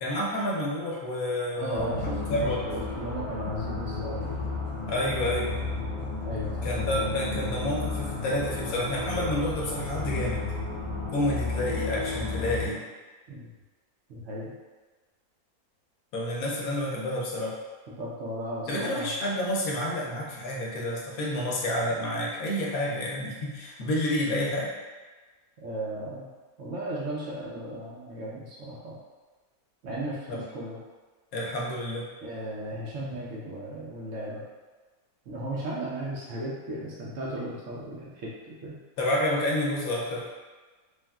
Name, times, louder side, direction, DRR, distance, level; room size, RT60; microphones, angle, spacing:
voice 1, 0.0-2.6 4.9-5.5 6.6-10.5 11.1-12.8 16.1-17.6 18.7-24.7 30.3-30.4 31.3-32.1 39.0-40.3, left 1 dB, 75° left, -3 dB, 1.0 m, -29 dB
voice 2, 1.6-2.1 3.0-4.4 6.2-6.9 13.3-13.5 14.1-14.5 18.0-19.1 25.6-26.3 26.6-29.0 29.8-30.2 30.5-30.8 32.2-34.4 35.3-38.8, right 1 dB, 65° right, -5 dB, 0.8 m, -35 dB
sound 1, 1.7-12.7, left 3 dB, 55° left, 0.7 m, -32 dB
sound 2, 4.0-9.5, left 1 dB, 30° left, 1.1 m, -48 dB
3.3 x 2.3 x 2.2 m, 1.3 s
omnidirectional pair, 1.6 m